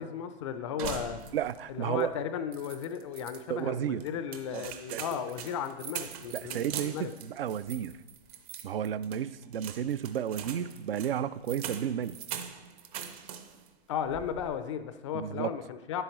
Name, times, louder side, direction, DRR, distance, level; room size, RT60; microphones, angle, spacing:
voice 1, 0.0-1.2 1.7-7.1 13.9-16.0, left 8 dB, 30° left, 10 dB, 0.4 m, -35 dB
sound 1, 0.8-1.7 2.0-2.1 2.5-3.4 4.0-13.7 14.0-14.6, right 8 dB, 35° right, 0.7 m, -42 dB
voice 2, 1.3-2.1 3.5-4.0 4.5-5.0 6.3-8.0 8.6-12.2 15.1-15.5, right 9 dB, 60° right, 16 dB, 0.5 m, -32 dB
10.5 x 7.9 x 3.0 m, 1.1 s
hypercardioid pair, 125°, 33 cm